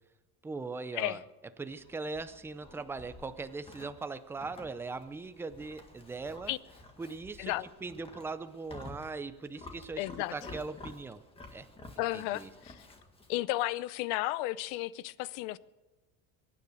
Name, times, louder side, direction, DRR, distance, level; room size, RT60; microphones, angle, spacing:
voice 1, 0.4-1.2 1.6-6.5 7.0-7.5 7.8-10.1 10.3-11.2 11.5-11.7 12.1-12.5, right 3 dB, 5° right, 0.5 m, -40 dB
Livestock farm animals working animals, 1.7-13.4, left 2 dB, 15° left, 1.7 m, -51 dB
voice 2, 10.0-10.3 12.0-12.9 13.3-15.6, left 17 dB, 80° left, 0.7 m, -33 dB
23.0 x 9.9 x 6.4 m
cardioid pair, 165°, 36 cm